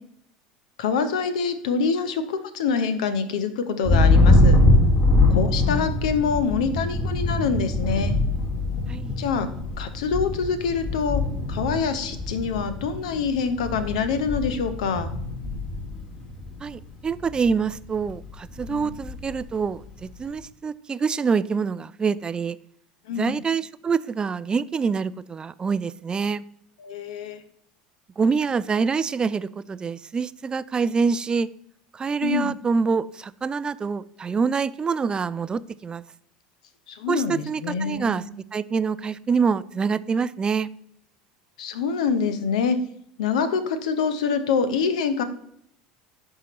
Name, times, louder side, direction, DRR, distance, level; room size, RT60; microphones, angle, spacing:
voice 1, 0.8-4.6 5.3-8.2 9.2-9.5 9.8-11.2 11.5-15.1 18.7-18.9 23.1-23.3 26.8-27.4 32.2-32.5 36.9-38.2 41.6-42.8 43.2-45.2, left 5 dB, 70° left, 11 dB, 0.7 m, -25 dB
Thunder, 3.8-16.7 17.1-17.6 18.0-19.4, left 2 dB, 35° left, 2.2 m, -23 dB
voice 2, 16.6-22.6 23.2-26.4 28.2-31.5 31.9-36.0 37.1-38.2 38.5-40.7, right 5 dB, 25° right, 17 dB, 0.3 m, -26 dB
11.0 x 3.7 x 3.0 m, 0.70 s
hypercardioid pair, 75°, 4 cm